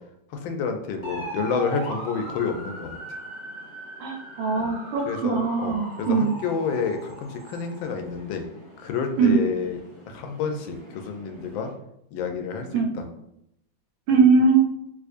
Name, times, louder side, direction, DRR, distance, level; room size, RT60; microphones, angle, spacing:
voice 1, 0.3-3.2 4.6-4.7 5.1-8.4 8.8-9.8 10.1-11.7 12.1-13.0, left 5 dB, 85° left, 5 dB, 1.3 m, -29 dB
sound 1, 1.0-11.7, right 2 dB, 10° left, 0.7 m, -40 dB
voice 2, 4.0-6.3 9.2-9.4 12.7-12.9 14.1-14.6, right 4 dB, 80° right, 1 dB, 1.4 m, -21 dB
3.5 x 2.9 x 2.5 m, 0.79 s
omnidirectional pair, 2.1 m